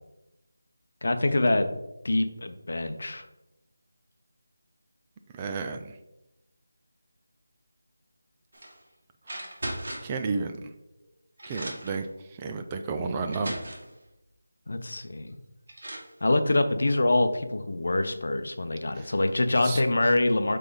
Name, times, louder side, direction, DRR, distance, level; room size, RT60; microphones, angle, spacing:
voice 1, 1.0-1.8 2.0-3.3 14.7-15.4 16.2-20.6, left 2 dB, 60° left, 8 dB, 0.7 m, -25 dB
voice 2, 5.3-6.0 9.4-9.5 10.0-10.7 11.4-13.6 18.9-19.1 19.6-19.8, right 4 dB, 15° right, 6 dB, 0.3 m, -32 dB
sound 1, 8.5-8.8 9.2-10.2 11.0-11.1 11.4-12.0 12.8-12.9 13.3-13.9 15.3-15.4 15.7-16.1, right 1 dB, 60° right, 1.7 m, -37 dB
7.9 x 3.3 x 3.7 m, 0.91 s
figure-of-eight pair, 175°, 0 cm